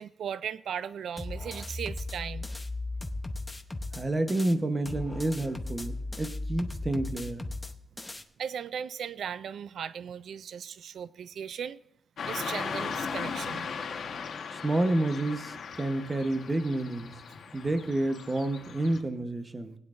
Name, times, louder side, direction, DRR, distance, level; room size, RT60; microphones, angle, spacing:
voice 1, 0.0-2.5 8.4-11.8 12.3-13.7, right 8 dB, 90° right, 0.3 m, -37 dB
sound 1, 1.2-4.5 4.9-8.2, left 2 dB, 15° left, 0.7 m, -37 dB
voice 2, 3.9-7.5 14.5-17.1 17.5-19.8, right 2 dB, 25° right, 0.9 m, -29 dB
Car passing by / Traffic noise roadway noise, 12.2-19.0, left 6 dB, 75° left, 1.2 m, -38 dB
19.5 x 9.7 x 2.5 m
wide cardioid pair, 150°, 0 cm